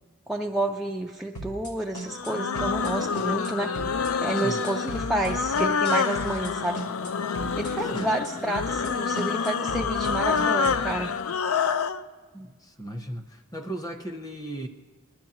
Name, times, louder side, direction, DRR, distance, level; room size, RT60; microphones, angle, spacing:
voice 1, 0.3-3.8 4.2-6.8 7.6-11.1, right 1 dB, ahead, -1 dB, 0.4 m, -30 dB
sound 1, 1.3-1.7 1.9-2.3 2.5-2.9 3.1-3.5 3.7-4.1 4.3-6.5 6.7-7.1 7.3-7.7 7.9-8.3 8.5-8.9 9.1-10.8, right 1 dB, 85° left, 2.8 m, -37 dB
sound 2, 2.1-12.0, left 5 dB, 65° left, 0.4 m, -27 dB
voice 2, 7.8-8.2 12.3-14.7, right 1 dB, 15° left, 5 dB, 0.8 m, -36 dB
20.0 x 12.0 x 2.9 m, 1.4 s
head